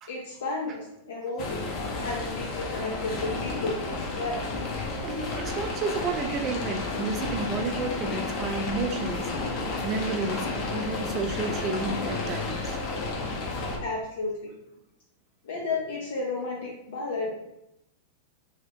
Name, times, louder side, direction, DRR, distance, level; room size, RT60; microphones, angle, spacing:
voice 1, 0.1-1.6 2.0-3.8 4.1-4.4 13.8-14.5 15.4-17.3, left 3 dB, 80° left, -3 dB, 0.6 m, -32 dB
sound 1, 1.4-13.8, left 3 dB, 35° left, 0.6 m, -32 dB
voice 2, 5.0-9.3 9.8-12.7, right 4 dB, 25° right, 4 dB, 0.3 m, -31 dB
2.7 x 2.4 x 3.3 m, 0.84 s
supercardioid pair, 145°, 0 cm